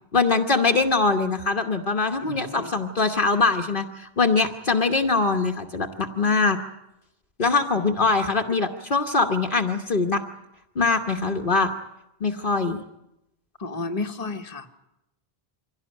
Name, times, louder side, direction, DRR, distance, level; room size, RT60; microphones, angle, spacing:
voice 1, 0.1-6.6 7.4-10.2 10.7-11.7 12.2-12.8, left 4 dB, 55° left, 4 dB, 1.4 m, -22 dB
voice 2, 2.2-2.7 13.6-14.7, left 3 dB, 35° left, 4 dB, 1.4 m, -32 dB
24.5 x 17.0 x 9.8 m, 0.89 s
omnidirectional pair, 1.0 m